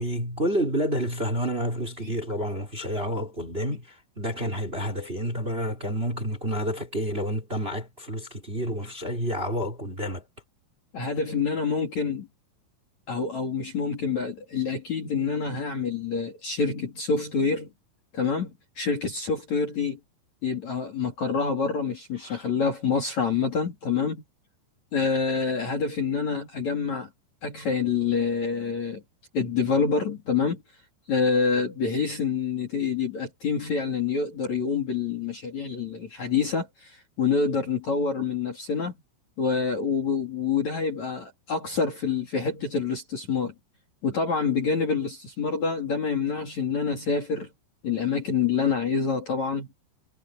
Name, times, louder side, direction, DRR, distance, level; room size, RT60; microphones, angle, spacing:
voice 1, 0.0-10.2 22.2-22.5, equal, 15° right, 3.5 m, -29 dB
voice 2, 10.9-12.3 13.1-17.7 18.1-20.0 20.4-24.2 24.9-27.1 27.4-29.0 29.3-30.6 31.1-38.9 39.4-43.5 44.0-47.5 47.8-49.7, left 5 dB, 40° left, 3.5 m, -27 dB
omnidirectional pair, 5.7 m